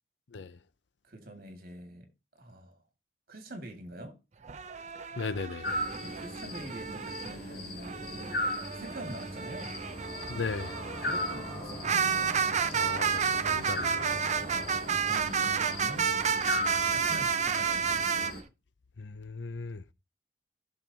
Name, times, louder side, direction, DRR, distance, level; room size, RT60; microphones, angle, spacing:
voice 1, 1.0-2.8 3.3-4.2 6.0-9.8 10.9-12.5 14.5-16.1 16.9-17.9, right 1 dB, 55° right, 2.3 m, -45 dB
sound 1, 4.4-7.3 7.8-18.3, right 6 dB, 40° right, 0.7 m, -31 dB
voice 2, 5.1-5.7 10.3-10.8 12.7-14.2 19.0-19.8, left 4 dB, 85° left, 0.6 m, -37 dB
sound 2, 5.6-18.4, left 1 dB, 60° left, 3.2 m, -38 dB
sound 3, 9.1-16.5, left 1 dB, 15° left, 4.8 m, -47 dB
15.5 x 6.6 x 2.9 m
head